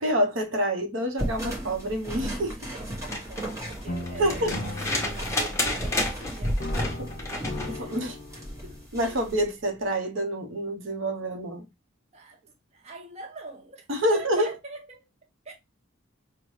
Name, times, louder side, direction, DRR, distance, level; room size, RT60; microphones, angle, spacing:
voice 1, 0.0-2.5 4.2-4.5 7.0-7.1 7.7-8.2 8.9-11.6 13.9-14.5, equal, 60° right, 0.8 m, -27 dB
sound 1, 1.2-9.4, equal, 15° right, 1.0 m, -35 dB
voice 2, 2.2-6.6 7.2-7.9 8.3-8.8 10.9-11.0 12.1-15.1 15.4-15.5, right 3 dB, 30° right, 0.6 m, -44 dB
sound 2, 2.9-7.8 9.4-9.5, left 2 dB, 15° left, 0.9 m, -31 dB
sound 3, 3.9-6.2 6.6-8.9, left 2 dB, 40° left, 0.5 m, -38 dB
5.5 x 2.2 x 3.0 m
head